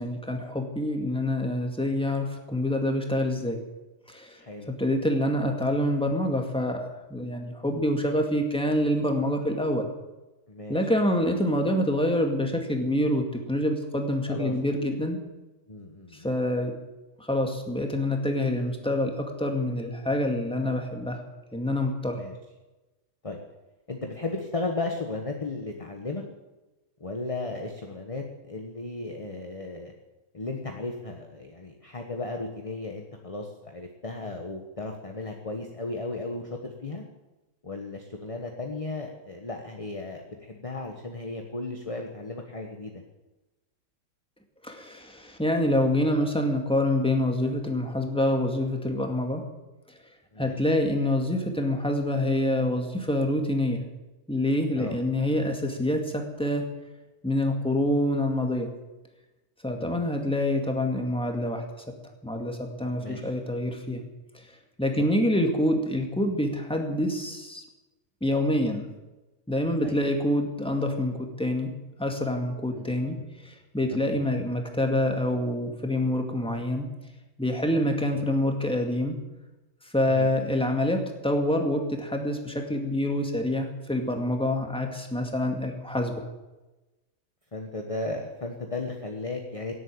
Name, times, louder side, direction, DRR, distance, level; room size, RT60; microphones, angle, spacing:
voice 1, 0.0-3.6 4.1-9.9 10.7-15.2 16.1-16.8 17.2-21.2 21.5-22.2 44.6-49.4 50.4-53.8 54.3-56.7 57.2-58.7 59.6-61.9 62.2-64.0 64.3-64.4 64.8-67.6 68.2-68.9 69.5-71.7 72.0-76.9 77.4-79.2 79.8-86.2, left 1 dB, 5° left, 3 dB, 2.1 m, -26 dB
voice 2, 4.4-4.7 10.5-10.8 14.3-14.6 15.7-16.3 22.1-22.3 23.2-23.4 23.9-26.2 27.0-29.9 30.3-37.0 37.6-43.0 50.3-50.8 54.8-55.0 59.7-60.1 63.0-63.3 64.9-65.2 69.8-70.0 72.7-73.1 73.9-74.3 78.1-78.6 80.1-80.3 87.5-89.7, left 2 dB, 25° left, 3 dB, 1.3 m, -35 dB
17.5 x 8.6 x 8.6 m, 1.1 s
omnidirectional pair, 1.5 m